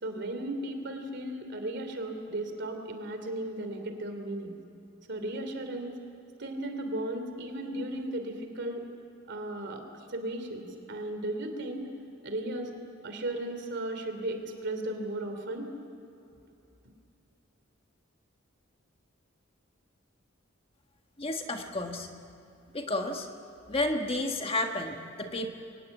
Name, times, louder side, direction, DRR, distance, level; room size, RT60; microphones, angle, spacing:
voice 1, 0.0-4.6 5.1-5.9 6.4-8.8 9.3-9.8 10.1-11.9 12.2-12.7 13.0-15.7, right 1 dB, 60° right, 6 dB, 3.0 m, -35 dB
voice 2, 21.2-22.1 22.7-23.3 23.7-25.5, left 2 dB, 30° left, 4 dB, 1.6 m, -31 dB
23.5 x 19.5 x 8.4 m, 2.7 s
head